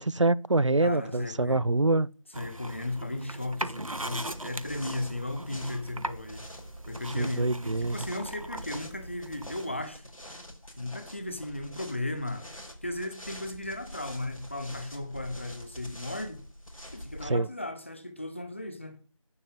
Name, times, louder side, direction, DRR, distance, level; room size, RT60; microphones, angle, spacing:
voice 1, 0.0-2.1 7.2-8.0 17.2-17.5, right 2 dB, 65° right, 0.6 m, -25 dB
voice 2, 0.8-1.6 2.3-6.4 6.9-10.0 10.8-12.5 12.8-16.4 16.9-19.0, left 1 dB, 20° left, 1.5 m, -36 dB
sound 1, 2.3-9.8, right 1 dB, 90° right, 1.3 m, -40 dB
sound 2, 3.9-17.3, equal, 85° left, 5.7 m, -46 dB
11.0 x 8.3 x 8.5 m
figure-of-eight pair, 175°, 17 cm